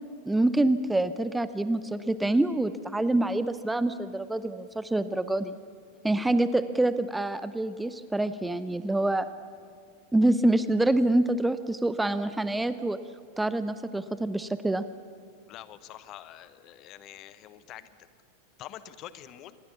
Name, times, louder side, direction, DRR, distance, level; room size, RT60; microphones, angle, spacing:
voice 1, 0.3-5.6 6.0-9.3 10.1-13.0 13.4-14.8, right 2 dB, 5° right, 13 dB, 0.7 m, -26 dB
voice 2, 15.5-17.9 18.6-19.5, left 12 dB, 35° left, 14 dB, 1.1 m, -45 dB
26.5 x 21.5 x 7.1 m, 2.1 s
figure-of-eight pair, 90°, 0 cm